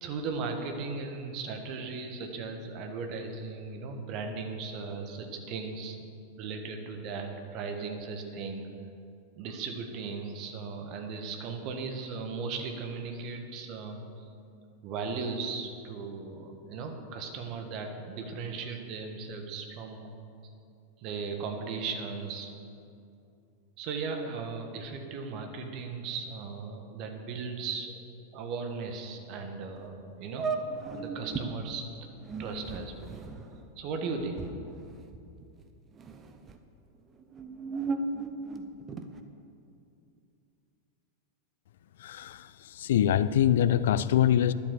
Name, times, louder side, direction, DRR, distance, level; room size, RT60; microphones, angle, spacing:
voice 1, 0.0-6.0 6.4-8.7 9.3-14.2 14.8-20.1 21.0-22.5 23.8-27.9 28.3-30.5 30.8-31.9 32.4-34.5, right 4 dB, 40° right, 4 dB, 1.4 m, -37 dB
sound 1, 29.8-29.9 30.3-31.5 32.1-35.6 35.9-36.6 37.2-39.2, right 4 dB, 25° right, 0.9 m, -36 dB
voice 2, 42.0-44.5, left 10 dB, 60° left, 16 dB, 0.4 m, -24 dB
11.0 x 8.5 x 6.7 m, 2.5 s
figure-of-eight pair, 90°, 0 cm